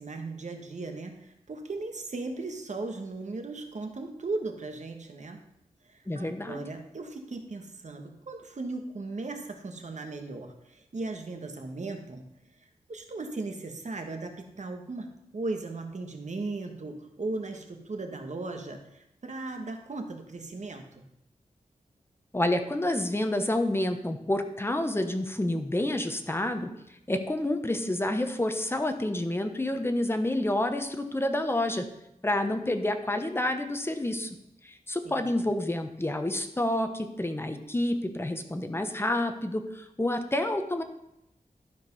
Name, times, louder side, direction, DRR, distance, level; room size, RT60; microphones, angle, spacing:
voice 1, 0.0-5.4 5.9-12.2 12.9-21.0 35.0-35.5, right 3 dB, 55° right, 4 dB, 1.4 m, -37 dB
voice 2, 6.1-6.7 22.3-26.7 27.1-31.9 32.2-34.3 34.6-40.8, left 1 dB, 15° left, 7 dB, 0.9 m, -29 dB
12.0 x 5.2 x 5.4 m, 0.82 s
wide cardioid pair, 95°, 14 cm